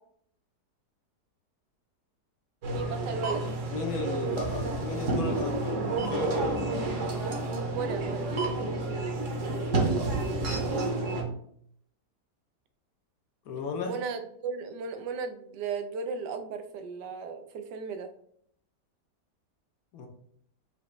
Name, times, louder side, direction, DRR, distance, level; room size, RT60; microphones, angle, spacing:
sound 1, 2.6-11.2, right 2 dB, 50° right, 1.1 m, -30 dB
voice 1, 2.7-3.4 7.7-8.3 13.8-18.1, right 5 dB, 80° right, 7 dB, 1.2 m, -35 dB
voice 2, 3.7-6.9 13.5-13.9 19.9-20.1, left 4 dB, 65° left, 3 dB, 1.1 m, -35 dB
4.9 x 2.9 x 3.1 m, 0.65 s
omnidirectional pair, 1.8 m